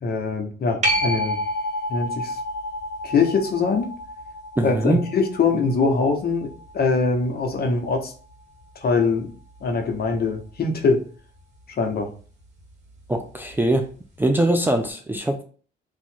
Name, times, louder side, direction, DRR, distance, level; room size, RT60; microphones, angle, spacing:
voice 1, 0.0-1.4 1.9-2.4 3.0-3.9 4.6-6.5 6.7-8.1 8.8-9.3 9.6-11.0 11.8-12.1, left 4 dB, 50° left, 3 dB, 0.9 m, -22 dB
sound 1, 0.8-8.0 13.5-13.6, equal, 35° right, 1.4 m, -30 dB
voice 2, 4.6-5.1 13.1-13.9 14.2-15.4, right 1 dB, 10° right, 3 dB, 0.4 m, -22 dB
2.8 x 2.5 x 4.3 m, 0.41 s
cardioid pair, 90°, 20 cm